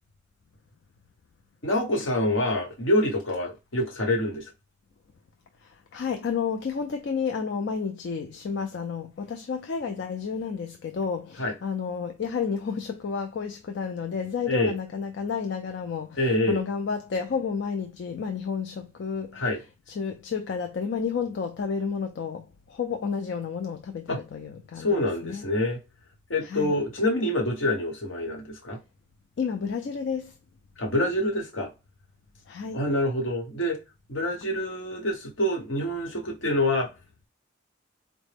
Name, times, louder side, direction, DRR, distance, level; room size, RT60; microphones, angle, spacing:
voice 1, 1.6-4.5 11.4-11.5 14.5-14.7 16.2-16.6 19.3-19.6 24.1-24.2 24.8-25.8 26.3-28.8 30.8-31.7 32.7-33.8 34.1-36.9, left 1 dB, 75° left, 1.1 m, -26 dB
voice 2, 5.6-19.5 19.9-25.0 25.2-25.5 26.4-26.8 29.4-30.4 32.5-32.8, left 6 dB, 60° left, 0.3 m, -31 dB
4.0 x 2.0 x 3.3 m
head